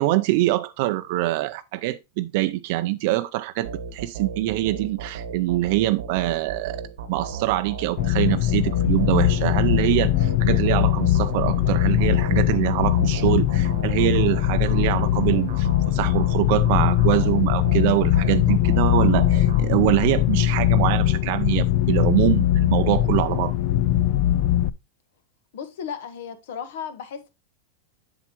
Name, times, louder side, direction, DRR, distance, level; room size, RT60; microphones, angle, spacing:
voice 1, 0.0-6.8 7.1-23.6, right 17 dB, 55° right, 0.4 m, -24 dB
sound 1, 3.6-20.3, right 5 dB, 80° right, 1.1 m, -36 dB
sound 2, 8.0-24.7, left 13 dB, 50° left, 0.4 m, -21 dB
voice 2, 25.5-27.3, left 7 dB, 75° left, 1.3 m, -35 dB
7.4 x 7.2 x 3.0 m
supercardioid pair, 140°, 0 cm